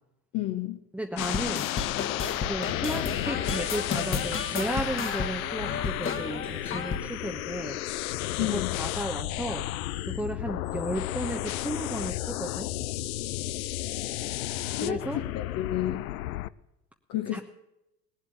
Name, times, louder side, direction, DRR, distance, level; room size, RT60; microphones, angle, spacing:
voice 1, 0.3-0.8 8.4-8.8 14.8-16.0 17.1-17.4, left 13 dB, 40° left, 5 dB, 1.3 m, -31 dB
voice 2, 0.9-1.7 2.4-7.8 8.4-9.7 10.0-12.7 14.8-15.2 17.3-17.4, right 1 dB, 5° right, 2 dB, 1.1 m, -34 dB
sound 1, 1.2-16.5, left 15 dB, 60° left, 0.7 m, -33 dB
sound 2, 1.2-7.1, left 5 dB, 25° left, 1.6 m, -32 dB
19.5 x 8.1 x 8.2 m, 0.88 s
figure-of-eight pair, 75°, 48 cm